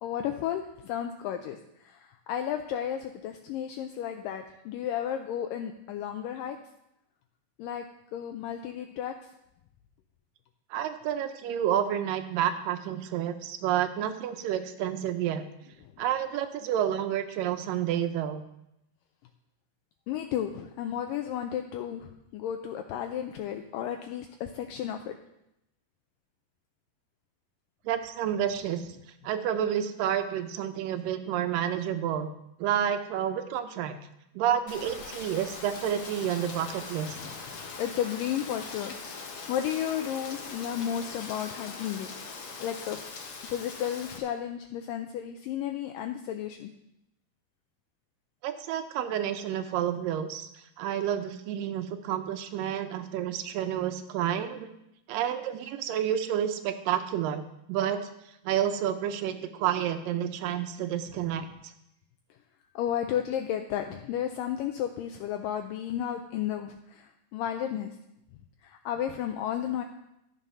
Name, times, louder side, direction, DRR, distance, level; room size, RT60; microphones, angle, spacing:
voice 1, 0.0-6.6 7.6-7.9 8.1-9.1 20.1-25.2 37.2-37.4 37.8-42.1 42.6-43.0 43.5-46.7 62.8-67.9 68.6-69.8, left 10 dB, 80° left, 5 dB, 2.1 m, -33 dB
voice 2, 10.7-15.5 16.0-18.4 27.9-29.0 29.2-32.3 32.6-34.0 34.4-37.2 48.4-50.5 50.8-54.7 55.1-58.1 58.4-61.7, right 10 dB, 75° right, 9 dB, 2.2 m, -30 dB
Rain, 34.7-44.2, left 4 dB, 55° left, 1.6 m, -41 dB
12.5 x 7.3 x 5.5 m, 0.83 s
omnidirectional pair, 4.2 m